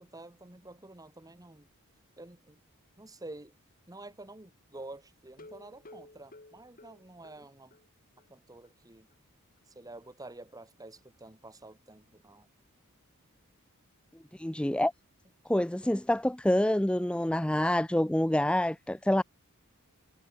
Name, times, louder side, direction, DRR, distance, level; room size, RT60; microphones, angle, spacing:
voice 1, 0.0-1.7 2.2-2.6 3.0-3.5 3.9-7.8 8.3-9.1 9.8-12.5, right 2 dB, 15° right, 1.6 m, -49 dB
sound 1, 5.3-7.9 8.2-8.3 8.6-8.7 9.1-9.2, left 2 dB, 40° left, 4.4 m, -53 dB
voice 2, 14.3-14.9 15.5-19.2, left 1 dB, 5° left, 0.5 m, -27 dB
head